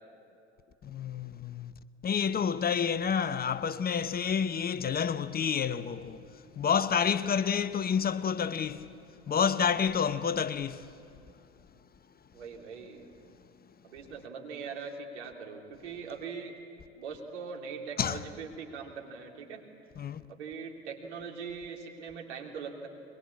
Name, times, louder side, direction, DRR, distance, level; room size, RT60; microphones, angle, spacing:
voice 1, 0.8-1.7 2.0-8.9 9.3-11.0 18.0-18.2 20.0-20.3, left 7 dB, 25° left, 0.8 m, -29 dB
voice 2, 12.3-13.0 13.8-16.6 17.0-19.6 20.3-22.9, right 5 dB, 75° right, 3.0 m, -41 dB
22.5 x 21.5 x 8.5 m
hypercardioid pair, 75°, 35 cm